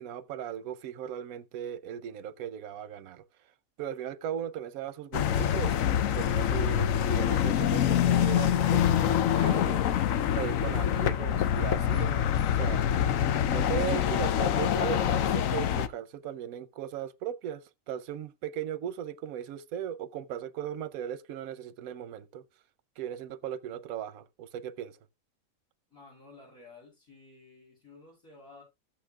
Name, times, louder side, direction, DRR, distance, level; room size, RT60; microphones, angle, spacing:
voice 1, 0.0-3.2 3.8-5.8 6.1-9.8 10.3-12.9 13.5-22.4 23.0-25.0, right 10 dB, 85° right, 1.1 m, -37 dB
sound 1, 5.1-15.9, left 9 dB, 75° left, 1.0 m, -25 dB
voice 2, 25.9-28.6, left 3 dB, 90° left, 7.6 m, -53 dB
13.5 x 8.6 x 2.3 m
omnidirectional pair, 1.4 m